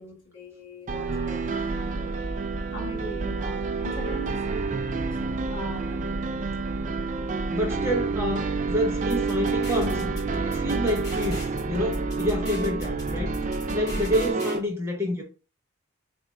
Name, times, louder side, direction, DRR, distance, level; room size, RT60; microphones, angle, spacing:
voice 1, 0.0-2.3 2.7-6.2, equal, 60° left, 1.9 m, -41 dB
sound 1, 0.9-14.6, right 4 dB, 35° right, 0.3 m, -30 dB
sound 2, 0.9-14.3, right 1 dB, 65° right, 0.7 m, -35 dB
voice 2, 7.5-10.2 10.4-13.4 13.7-15.2, left 1 dB, 10° right, 0.7 m, -28 dB
sound 3, 8.9-14.6, left 1 dB, 15° left, 1.3 m, -40 dB
4.1 x 2.6 x 3.5 m
head